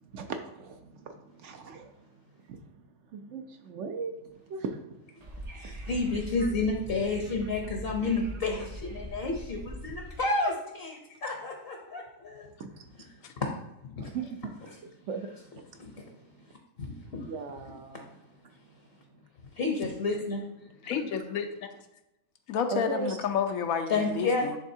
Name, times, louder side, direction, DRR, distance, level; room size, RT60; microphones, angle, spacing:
voice 1, 0.0-2.0 2.5-2.6 3.1-5.1 7.3-7.4 12.6-13.0 14.0-15.6 16.0-16.4 17.1-18.3 20.8-20.9 22.7-23.2, right 5 dB, 65° right, 5 dB, 0.9 m, -39 dB
Wind / Subway metro underground, 5.2-10.2, right 1 dB, 40° right, 0.6 m, -41 dB
voice 2, 5.6-12.5 13.4-13.5 13.8-14.1 15.8-15.9 16.8-17.2 19.6-20.4 23.9-24.5, left 3 dB, 50° left, 2 dB, 0.9 m, -30 dB
voice 3, 20.9-21.5 22.5-24.6, left 7 dB, 85° left, 6 dB, 1.1 m, -30 dB
10.0 x 3.6 x 2.7 m, 0.89 s
omnidirectional pair, 1.5 m